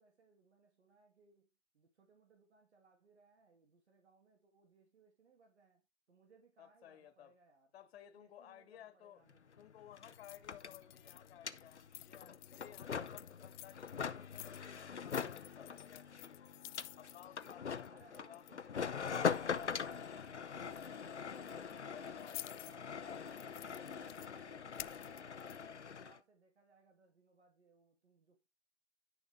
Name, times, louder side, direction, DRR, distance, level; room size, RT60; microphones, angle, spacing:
voice 1, 0.0-1.5 1.7-5.8 6.1-7.7 8.2-9.6 17.9-18.7 19.0-23.4 23.7-28.5, right 3 dB, 80° right, 2.9 m, -67 dB
voice 2, 6.6-7.4 7.7-9.2 9.6-16.6 17.0-19.9 21.6-22.6, left 11 dB, 65° left, 1.9 m, -58 dB
sound 1, 9.3-9.4 9.6-26.2, left 6 dB, 90° left, 0.9 m, -42 dB
sound 2, 10.1-11.3 11.6-18.7 19.1-20.3 20.6-20.9 21.4-22.8 23.2-24.3 24.7-25.6, left 18 dB, 45° left, 0.4 m, -53 dB
10.5 x 6.9 x 3.5 m
figure-of-eight pair, 100°, 33 cm